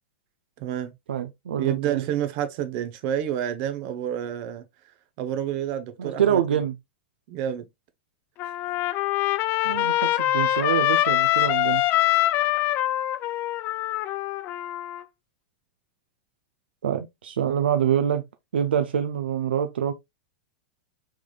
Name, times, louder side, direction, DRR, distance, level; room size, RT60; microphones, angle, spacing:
voice 1, 0.6-0.9 1.6-4.6 5.2-6.4 7.3-7.6 8.4-8.5 9.8-9.9, right 10 dB, 50° right, 0.7 m, -29 dB
voice 2, 1.1-2.0 6.0-6.8 9.6-11.8 16.8-18.3 18.5-19.9, right 9 dB, 80° right, 0.4 m, -25 dB
Trumpet, 8.4-15.0, left 15 dB, 40° left, 0.3 m, -24 dB
3.6 x 3.3 x 2.2 m
hypercardioid pair, 105°, 5 cm